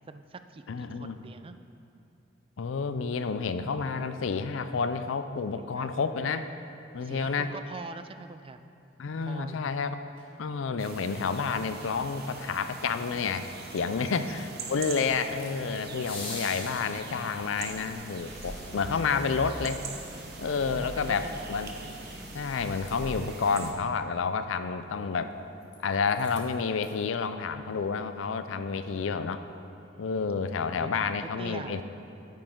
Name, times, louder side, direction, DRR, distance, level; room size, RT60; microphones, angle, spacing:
voice 1, 0.1-1.6 5.6-5.9 7.0-8.7 9.2-9.8 13.7-14.5 20.4-21.5 29.8-31.8, right 3 dB, 30° right, 10 dB, 0.3 m, -44 dB
voice 2, 0.7-1.2 2.6-6.4 6.9-7.5 9.0-10.0 10.4-19.8 20.4-21.7 22.3-25.3 25.8-29.4 30.0-31.8, left 5 dB, 80° left, 10 dB, 0.5 m, -30 dB
sound 1, 10.1-10.2 15.8-17.6 19.7-19.8, left 2 dB, 25° left, 2.1 m, -41 dB
sound 2, 10.8-23.7, right 4 dB, 55° right, 0.9 m, -43 dB
Miata Start and Stop, 13.5-13.6 14.0-15.5 15.8-23.6 25.1-25.8 26.0-27.0, equal, 60° left, 1.3 m, -45 dB
9.3 x 9.2 x 3.7 m, 2.6 s
head